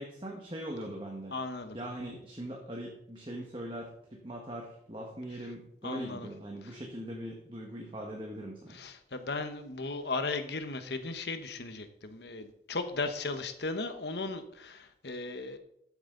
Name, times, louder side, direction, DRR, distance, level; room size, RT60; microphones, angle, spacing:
voice 1, 0.0-1.3 1.7-8.8, right 1 dB, 30° right, 0 dB, 1.5 m, -41 dB
voice 2, 1.3-1.8 5.8-6.3 8.7-15.6, left 3 dB, 75° left, 8 dB, 1.2 m, -36 dB
13.5 x 8.1 x 3.9 m, 0.74 s
head